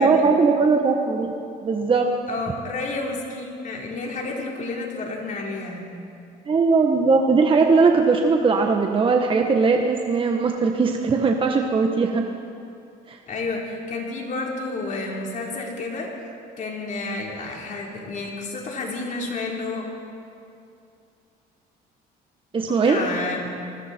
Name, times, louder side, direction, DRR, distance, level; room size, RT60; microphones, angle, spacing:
voice 1, 0.0-1.3 1.6-2.1 6.5-12.2 13.1-13.2 22.5-23.0, right 4 dB, 30° right, 2 dB, 1.5 m, -19 dB
voice 2, 2.3-5.9 13.3-16.1 16.6-19.8 22.7-23.5, left 3 dB, 50° left, -1 dB, 4.3 m, -30 dB
27.5 x 20.5 x 4.6 m, 2.6 s
cardioid pair, 110°, 17 cm